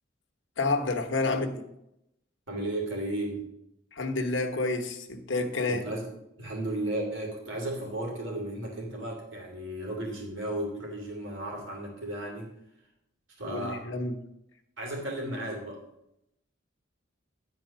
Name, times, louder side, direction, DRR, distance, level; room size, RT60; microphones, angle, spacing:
voice 1, 0.6-1.7 3.9-5.8 13.4-14.2, left 3 dB, 75° left, 5 dB, 1.2 m, -29 dB
voice 2, 2.5-3.5 5.7-6.1 6.4-12.5 13.4-13.9 14.8-15.8, right 1 dB, 80° right, -1 dB, 2.8 m, -34 dB
10.5 x 4.6 x 6.5 m, 0.82 s
head